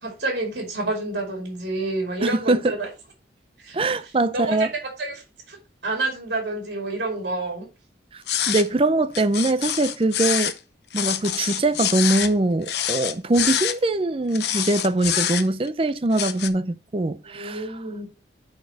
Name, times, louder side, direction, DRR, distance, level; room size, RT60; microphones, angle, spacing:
voice 1, 0.0-2.9 3.6-3.8 4.0-5.6 5.8-7.7 17.2-18.0, right 2 dB, 70° right, 2.5 m, -29 dB
voice 2, 2.2-2.7 3.7-4.7 8.1-8.2 8.5-10.5 10.9-17.7, right 2 dB, 30° right, 0.5 m, -22 dB
sound 1, 8.3-8.7 9.1-10.6 10.9-12.3 12.6-13.7 14.3-15.7 16.1-16.5, left 10 dB, 70° left, 0.7 m, -26 dB
9.6 x 4.4 x 4.1 m
head